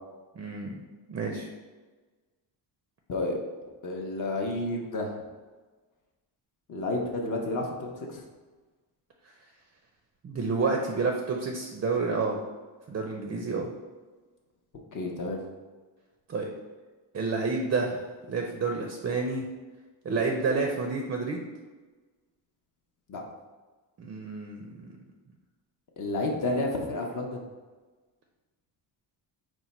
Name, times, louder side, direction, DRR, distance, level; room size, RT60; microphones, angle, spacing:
voice 1, 0.4-0.8 1.1-1.5 10.2-12.4 12.9-13.7 16.3-16.5 17.1-18.0 18.3-19.4 20.0-21.4 24.0-25.0, right 4 dB, 35° right, 2 dB, 0.4 m, -29 dB
voice 2, 3.8-5.1 6.7-8.2 14.9-15.4 23.1-23.2 26.0-27.4, left 2 dB, 45° left, 0 dB, 0.6 m, -30 dB
4.4 x 2.2 x 4.0 m, 1.3 s
cardioid pair, 125°, 43 cm